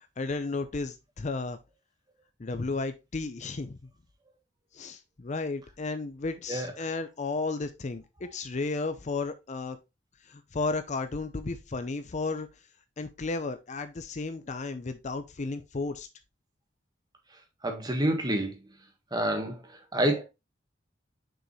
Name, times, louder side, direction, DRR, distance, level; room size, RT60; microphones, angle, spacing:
voice 1, 0.2-1.6 2.4-3.8 4.7-9.8 10.2-12.5 13.0-16.1, left 3 dB, 40° left, 0.5 m, -33 dB
voice 2, 17.6-18.6 19.1-20.2, right 1 dB, 20° right, 1.5 m, -28 dB
6.3 x 5.2 x 3.1 m
head